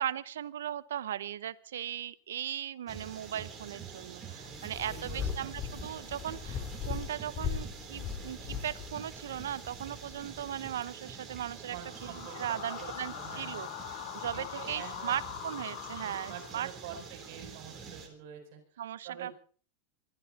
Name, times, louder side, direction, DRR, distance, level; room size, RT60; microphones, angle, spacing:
voice 1, 0.0-11.8 12.0-13.7 14.1-17.0 18.8-19.3, right 10 dB, 90° right, 19 dB, 0.8 m, -38 dB
sound 1, 2.9-18.1, right 6 dB, 25° right, 3.7 m, -47 dB
voice 2, 4.3-5.6 11.7-13.7 14.3-15.1 16.0-19.3, right 8 dB, 60° right, 4 dB, 7.5 m, -47 dB
sound 2, 4.4-10.8, left 7 dB, 35° left, 3.3 m, -40 dB
sound 3, 11.8-16.9, left 17 dB, 60° left, 0.8 m, -43 dB
25.5 x 13.0 x 4.2 m, 0.41 s
supercardioid pair, 135°, 0 cm